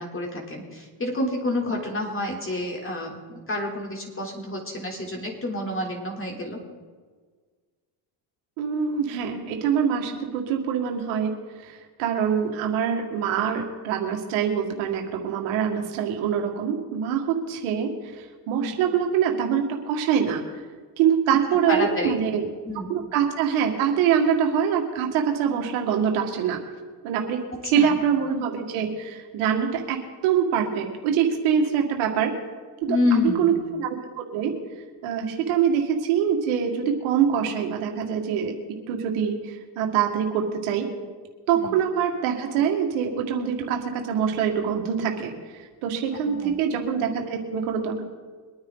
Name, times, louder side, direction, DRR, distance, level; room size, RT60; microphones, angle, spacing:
voice 1, 0.0-6.6 18.6-18.7 21.7-22.2 22.6-22.9 27.7-28.0 32.9-33.5 41.5-41.8 46.2-46.6, left 2 dB, 25° left, 0 dB, 3.8 m, -28 dB
voice 2, 8.6-11.3 11.6-17.9 18.2-20.4 21.0-22.5 22.9-26.6 27.0-32.3 33.1-34.6 35.0-38.6 38.9-40.9 41.5-45.3 45.6-48.0, right 8 dB, 90° right, 2 dB, 2.1 m, -24 dB
23.5 x 9.7 x 4.0 m, 1.5 s
cardioid pair, 95°, 47 cm